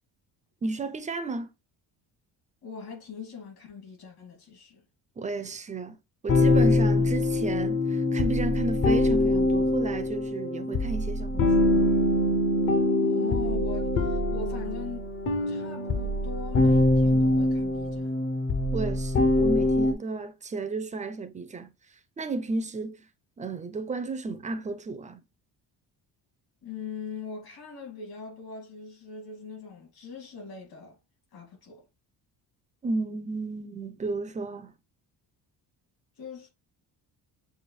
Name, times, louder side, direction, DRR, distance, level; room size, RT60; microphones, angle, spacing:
voice 1, 0.6-1.5 5.2-6.0 6.2-11.8 18.7-23.0 23.4-25.2 32.8-34.7, right 3 dB, 20° right, 0.3 m, -33 dB
voice 2, 2.6-4.8 6.9-7.2 13.0-15.1 15.5-18.2 26.6-31.0 31.3-31.8 36.2-36.5, left 5 dB, 65° left, 2.6 m, -41 dB
sound 1, 6.3-19.9, left 2 dB, 35° left, 0.5 m, -24 dB
6.8 x 2.4 x 3.1 m
cardioid pair, 155°, 40 cm